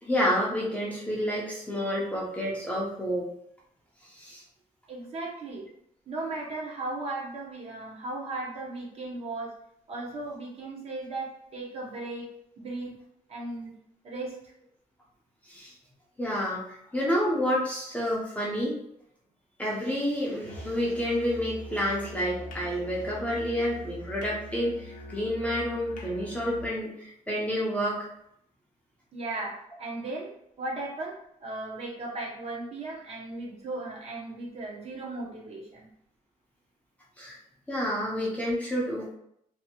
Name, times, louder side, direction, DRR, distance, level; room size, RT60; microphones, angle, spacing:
voice 1, 0.0-3.3 4.1-4.4 15.5-15.7 16.2-18.7 19.6-28.1 37.2-37.4 37.7-39.1, equal, 10° left, -5 dB, 0.5 m, -29 dB
voice 2, 4.9-5.7 6.1-9.5 9.9-12.2 12.6-12.9 13.3-13.7 14.0-14.3 29.1-29.5 29.8-30.3 30.6-31.1 31.4-35.9, right 2 dB, 45° right, -2 dB, 0.7 m, -36 dB
Musical instrument, 20.4-26.7, right 1 dB, 65° left, 0.5 m, -43 dB
2.6 x 2.5 x 2.7 m, 0.74 s
wide cardioid pair, 175°, 15 cm